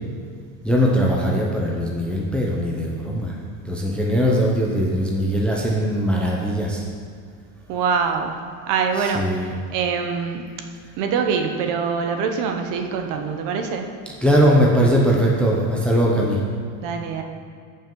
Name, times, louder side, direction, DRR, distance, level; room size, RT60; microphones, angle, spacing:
voice 1, 0.6-3.3 3.7-6.8 9.1-9.5 14.2-16.4, equal, ahead, -3 dB, 0.6 m, -20 dB
voice 2, 7.7-8.4 8.7-10.4 11.0-13.9 16.8-17.2, right 6 dB, 45° right, 4 dB, 0.9 m, -24 dB
14.0 x 5.6 x 3.8 m, 2.2 s
supercardioid pair, 160°, 43 cm